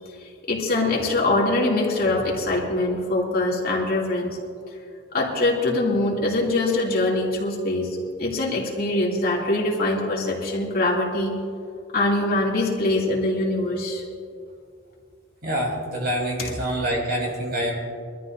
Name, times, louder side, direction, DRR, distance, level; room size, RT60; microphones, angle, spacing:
voice 1, 0.5-4.4 5.1-11.3 11.9-14.0, left 2 dB, 50° left, -3 dB, 2.6 m, -23 dB
voice 2, 15.4-17.7, equal, 50° right, -3 dB, 4.1 m, -26 dB
23.5 x 13.5 x 2.6 m, 2.3 s
head